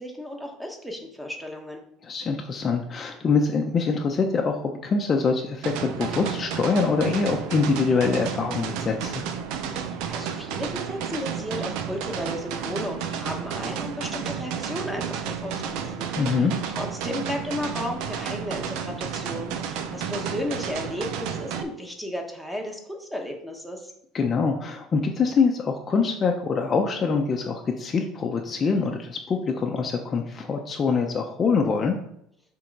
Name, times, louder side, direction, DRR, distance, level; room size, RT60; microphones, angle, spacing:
voice 1, 0.0-1.8 9.9-23.9, left 1 dB, 5° right, 2 dB, 1.3 m, -34 dB
voice 2, 2.0-9.2 16.2-16.5 24.1-32.0, left 4 dB, 30° left, 2 dB, 0.8 m, -24 dB
sound 1, 5.6-21.6, right 7 dB, 70° right, 0.7 m, -32 dB
7.5 x 3.8 x 5.3 m, 0.72 s
cardioid pair, 130°, 0 cm